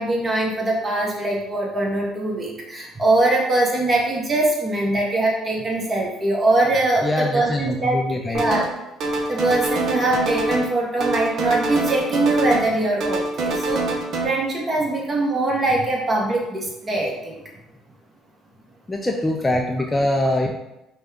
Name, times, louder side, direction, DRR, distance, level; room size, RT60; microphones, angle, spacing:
voice 1, 0.0-8.0 8.3-8.7 9.3-13.8 14.2-17.3, right 2 dB, 30° right, -2 dB, 1.2 m, -22 dB
voice 2, 7.0-8.4 18.9-20.5, left 1 dB, 15° left, 1 dB, 0.5 m, -23 dB
sound 1, 8.3-8.7 9.0-10.7 11.0-12.7 13.0-14.2, right 2 dB, 60° right, 0.7 m, -25 dB
5.1 x 2.3 x 3.5 m, 0.92 s
supercardioid pair, 85°, 0 cm